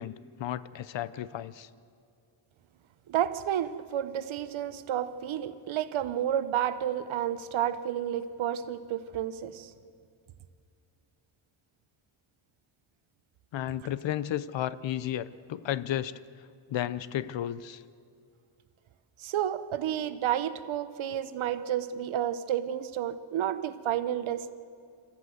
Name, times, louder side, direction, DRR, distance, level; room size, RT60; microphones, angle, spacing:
voice 1, 0.0-1.7 13.5-16.2 16.7-17.8, left 11 dB, 65° left, 17 dB, 0.7 m, -33 dB
voice 2, 3.1-9.7 19.2-24.5, right 10 dB, 70° right, 12 dB, 1.0 m, -31 dB
26.0 x 14.0 x 7.9 m, 2.3 s
cardioid pair, 130°, 49 cm